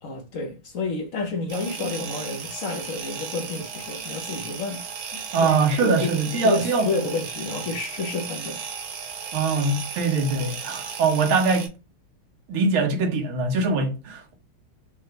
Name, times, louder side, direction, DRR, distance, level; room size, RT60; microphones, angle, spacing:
voice 1, 0.0-4.8 5.1-5.5 5.8-8.6 10.0-10.1, left 3 dB, 65° left, 0.8 m, -30 dB
sound 1, 1.5-11.7, right 6 dB, 65° right, 1.5 m, -36 dB
voice 2, 5.3-6.9 9.3-11.7 12.5-14.3, right 4 dB, 80° right, 1.8 m, -22 dB
5.2 x 2.2 x 3.2 m
omnidirectional pair, 2.3 m